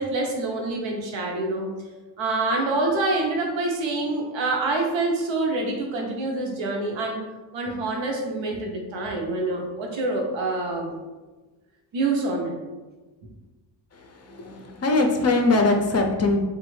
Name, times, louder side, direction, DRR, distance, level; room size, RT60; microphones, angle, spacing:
voice 1, 0.0-1.7 2.2-7.2 7.5-11.0 11.9-12.6, right 2 dB, 70° right, 1 dB, 0.8 m, -26 dB
voice 2, 14.3-16.4, left 2 dB, 35° left, 3 dB, 0.5 m, -21 dB
3.1 x 2.4 x 3.1 m, 1.2 s
cardioid pair, 85°, 48 cm